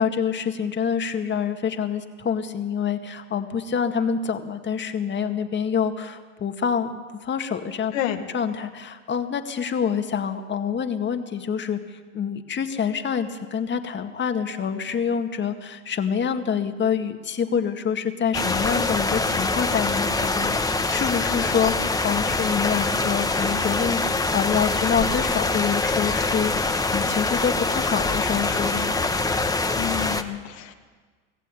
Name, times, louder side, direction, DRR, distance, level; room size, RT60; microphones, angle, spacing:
voice 1, 0.0-7.9 8.3-29.0, left 7 dB, 30° left, 7 dB, 2.0 m, -26 dB
voice 2, 7.9-8.2 29.8-30.7, left 12 dB, 75° left, 5 dB, 2.0 m, -29 dB
sound 1, 18.3-30.2, left 3 dB, 10° left, 1.4 m, -24 dB
25.5 x 16.0 x 8.6 m, 1.5 s
hypercardioid pair, 105°, 39 cm